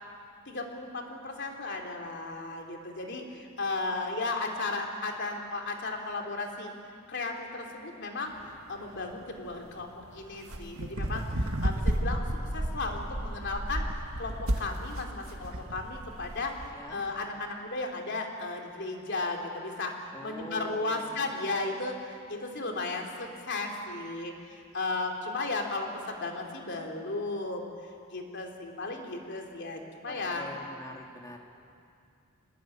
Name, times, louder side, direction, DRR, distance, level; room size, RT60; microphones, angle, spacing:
voice 1, 0.5-8.4 8.7-12.3 12.5-16.5 16.9-30.5, left 3 dB, 55° left, 2 dB, 3.2 m, -35 dB
sound 1, 8.3-16.7, right 1 dB, 75° right, 2.0 m, -33 dB
voice 2, 16.6-17.0 20.1-21.1 30.1-31.4, left 1 dB, 15° left, 0 dB, 2.7 m, -44 dB
25.0 x 19.5 x 9.1 m, 2.4 s
head